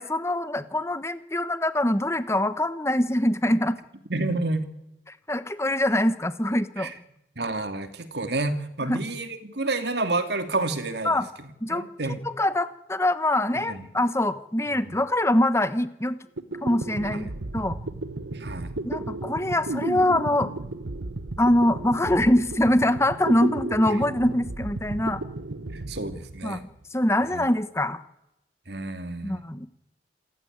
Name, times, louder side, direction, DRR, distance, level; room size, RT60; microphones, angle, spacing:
voice 1, 0.0-3.8 5.1-6.9 8.9-9.0 11.0-11.3 11.6-11.9 12.2-16.2 16.6-17.8 18.8-20.5 21.4-25.2 26.4-26.6 26.9-28.0 29.2-29.7, left 1 dB, 15° left, 12 dB, 1.2 m, -24 dB
voice 2, 4.1-4.7 6.8-6.9 7.4-12.2 13.6-13.9 14.9-15.0 17.1-17.2 18.3-18.7 25.7-26.6 27.3-27.5 28.7-29.4, right 2 dB, 60° right, 9 dB, 2.7 m, -30 dB
sound 1, 16.1-16.2 16.4-26.8, right 2 dB, 85° right, 1.3 m, -34 dB
28.0 x 15.5 x 9.5 m, 0.88 s
head